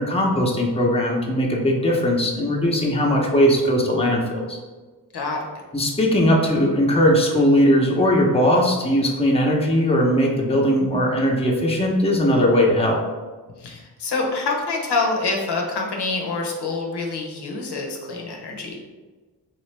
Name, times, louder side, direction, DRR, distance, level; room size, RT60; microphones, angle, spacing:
voice 1, 0.0-4.6 5.7-13.0, equal, 15° left, -2 dB, 0.8 m, -19 dB
voice 2, 13.6-18.8, left 3 dB, 70° left, 0 dB, 0.8 m, -26 dB
3.8 x 2.8 x 3.3 m, 1.3 s
cardioid pair, 65°, 41 cm